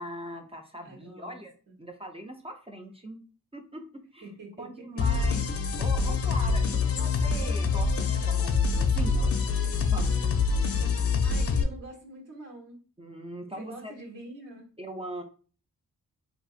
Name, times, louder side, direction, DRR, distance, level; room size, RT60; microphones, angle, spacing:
voice 1, 0.0-1.5 1.8-3.2 3.5-4.3 4.6-5.4 5.8-10.4 13.0-13.9 14.8-15.2, right 1 dB, 15° right, 3 dB, 0.4 m, -41 dB
voice 2, 0.8-1.4 1.7-1.8 4.2-4.7 4.9-5.0 11.2-12.8 13.6-14.7, right 1 dB, 70° right, 0 dB, 1.3 m, -45 dB
sound 1, 5.0-11.6, left 4 dB, 45° left, 0.5 m, -25 dB
3.8 x 2.6 x 2.4 m, 0.39 s
cardioid pair, 80°, 34 cm